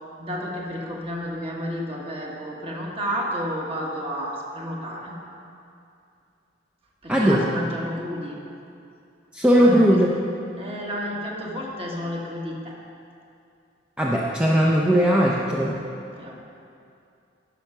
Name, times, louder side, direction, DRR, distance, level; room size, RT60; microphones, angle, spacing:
voice 1, 0.2-5.2 7.0-8.4 9.5-10.0 10.6-12.7 16.1-16.3, equal, 30° right, -2 dB, 1.4 m, -31 dB
voice 2, 7.1-7.5 9.3-10.3 14.0-15.8, equal, 5° right, -4 dB, 0.5 m, -19 dB
9.9 x 6.6 x 5.9 m, 2.5 s
head